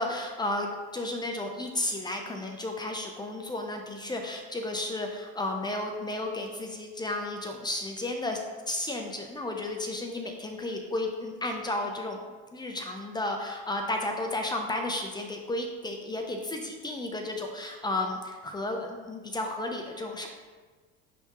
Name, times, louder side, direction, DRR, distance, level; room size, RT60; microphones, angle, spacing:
voice 1, 0.0-8.4 8.7-12.2 12.5-20.3, left 2 dB, 15° left, 3 dB, 0.6 m, -33 dB
10.0 x 3.5 x 3.0 m, 1.4 s
cardioid pair, 125°, 30 cm